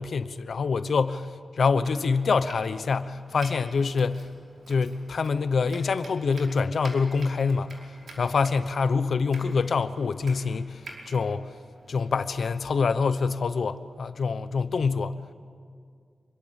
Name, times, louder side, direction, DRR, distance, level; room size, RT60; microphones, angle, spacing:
voice 1, 0.0-4.3 4.7-11.5 11.9-15.2, left 5 dB, 70° left, 0.9 m, -26 dB
Domestic sounds home sounds, 1.7-12.3, right 2 dB, 70° right, 5.0 m, -49 dB
26.5 x 23.5 x 8.3 m
wide cardioid pair, 140°, 0 cm